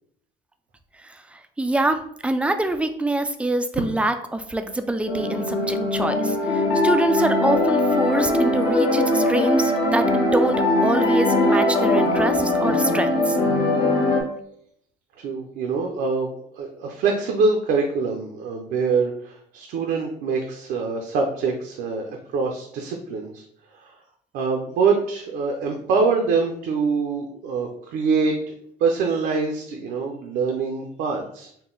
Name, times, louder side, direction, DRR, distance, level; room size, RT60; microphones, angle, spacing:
voice 1, 1.0-10.0 10.3-10.6 10.8-13.4, right 2 dB, 5° right, 8 dB, 0.3 m, -25 dB
sound 1, 5.1-14.2, left 2 dB, 60° left, 1.1 m, -21 dB
voice 2, 15.2-23.4 23.7-24.0 24.3-28.5 28.8-31.5, right 4 dB, 75° right, 2 dB, 0.6 m, -24 dB
3.8 x 2.1 x 3.8 m, 0.68 s
cardioid pair, 110°, 17 cm